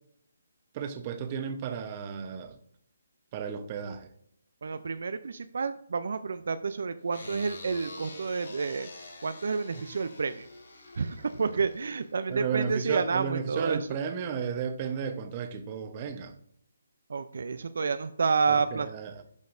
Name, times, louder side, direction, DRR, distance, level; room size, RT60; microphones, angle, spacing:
voice 1, 0.7-2.6 3.3-4.1 12.3-16.4 18.5-19.2, right 7 dB, 30° right, 0.8 m, -34 dB
voice 2, 4.6-8.9 9.2-10.5 11.0-13.9 17.1-18.9, right 5 dB, 70° right, 0.4 m, -29 dB
sound 1, 7.1-12.4, left 2 dB, 75° left, 2.8 m, -47 dB
11.5 x 5.2 x 2.6 m
hypercardioid pair, 155°, 0 cm